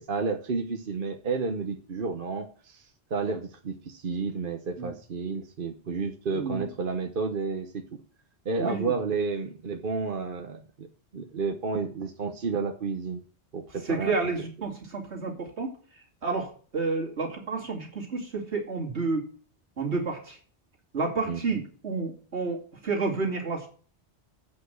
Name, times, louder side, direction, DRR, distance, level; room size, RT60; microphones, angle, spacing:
voice 1, 0.0-7.8 8.4-10.9 11.1-13.2 13.5-14.2 21.3-21.4, right 4 dB, 55° right, 5 dB, 1.1 m, -31 dB
voice 2, 6.3-6.7 8.6-8.9 13.8-15.8 16.2-19.3 19.8-20.4 20.9-23.7, right 3 dB, 70° right, -1 dB, 2.9 m, -30 dB
8.4 x 5.5 x 7.9 m, 0.42 s
omnidirectional pair, 1.2 m